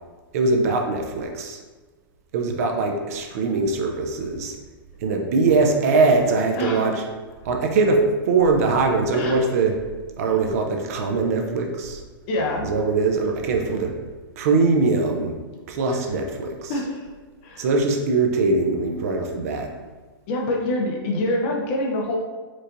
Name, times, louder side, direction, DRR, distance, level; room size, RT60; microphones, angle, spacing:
voice 1, 0.3-1.6 2.3-4.6 5.0-6.9 7.5-9.8 10.2-12.0 12.6-13.9 14.4-15.3 15.7-16.7 17.6-19.7, right 3 dB, 40° right, 2 dB, 0.4 m, -21 dB
voice 2, 6.6-6.9 9.1-9.5 12.3-12.7 15.9-16.0 16.7-17.1 17.4-17.7 20.3-22.2, left 1 dB, 30° left, 0 dB, 0.5 m, -26 dB
4.4 x 2.6 x 2.5 m, 1.3 s
hypercardioid pair, 160°, 13 cm